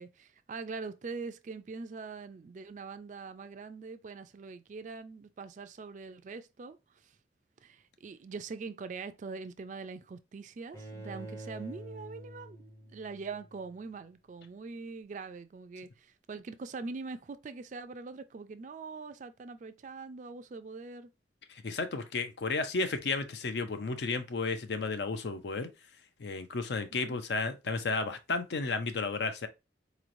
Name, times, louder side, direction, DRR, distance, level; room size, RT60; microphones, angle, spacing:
voice 1, 0.0-7.1 7.6-21.1 26.9-27.2, right 4 dB, 45° right, 0.3 m, -43 dB
Bowed string instrument, 10.7-13.8, right 1 dB, 15° left, 0.6 m, -46 dB
voice 2, 21.6-25.7 26.2-29.5, left 3 dB, 70° left, 0.5 m, -33 dB
4.0 x 3.0 x 2.5 m
head